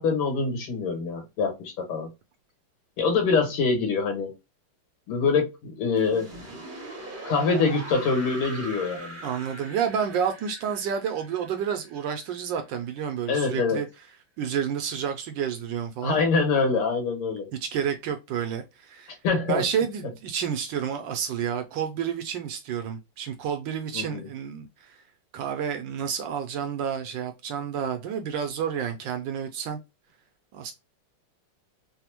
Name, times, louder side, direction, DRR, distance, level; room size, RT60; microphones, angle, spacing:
voice 1, 0.0-2.1 3.0-4.3 5.1-6.3 7.3-9.2 13.3-13.8 16.0-17.5 19.2-19.6 23.9-24.3, left 4 dB, 90° left, 2.1 m, -25 dB
sound 1, 6.0-12.9, right 2 dB, 50° right, 0.6 m, -41 dB
voice 2, 9.2-13.9 14.4-16.2 17.6-19.2 19.5-25.0 25.3-29.8 30.5-30.7, right 8 dB, 75° right, 1.1 m, -30 dB
4.1 x 2.1 x 2.8 m
omnidirectional pair, 2.4 m